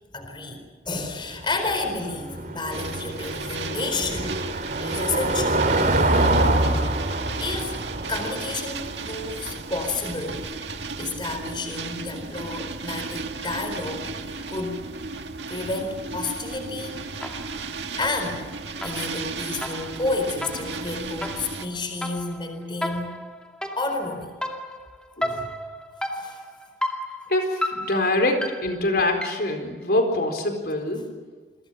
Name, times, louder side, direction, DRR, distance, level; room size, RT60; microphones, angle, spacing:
voice 1, 0.1-4.5 4.8-5.6 6.5-6.8 7.4-7.8 8.1-10.5 11.0-14.1 14.5-14.8 15.5-17.2 18.0-18.5 18.8-23.2 23.7-24.3 25.3-25.5 26.1-26.4, left 3 dB, 30° left, 5 dB, 4.3 m, -31 dB
Car passing by / Engine, 0.9-11.5, right 2 dB, 50° right, 2.9 m, -26 dB
sound 1, 2.7-21.7, right 4 dB, 85° right, 2.0 m, -35 dB
sound 2, 17.2-17.7 18.0-29.6, left 1 dB, 5° left, 2.4 m, -34 dB
voice 2, 27.3-31.1, left 1 dB, 60° left, 5 dB, 4.5 m, -24 dB
29.0 x 23.5 x 5.8 m, 1.4 s
head